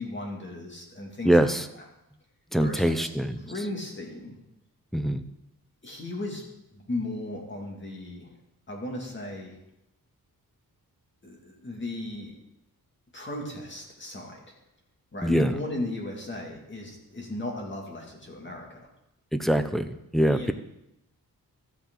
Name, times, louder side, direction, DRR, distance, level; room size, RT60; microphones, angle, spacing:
voice 1, 0.0-1.8 2.6-3.1 3.4-4.4 5.8-6.4 6.7-8.3 8.7-9.6 11.2-12.3 13.1-14.4 15.1-18.8 20.3-20.5, left 2 dB, 30° left, -1 dB, 2.3 m, -36 dB
voice 2, 1.2-1.6 2.5-3.4 4.9-5.2 15.2-15.5 19.3-19.9 20.1-20.5, right 1 dB, ahead, 8 dB, 0.5 m, -23 dB
13.5 x 8.3 x 3.8 m, 0.86 s
wide cardioid pair, 155°, 36 cm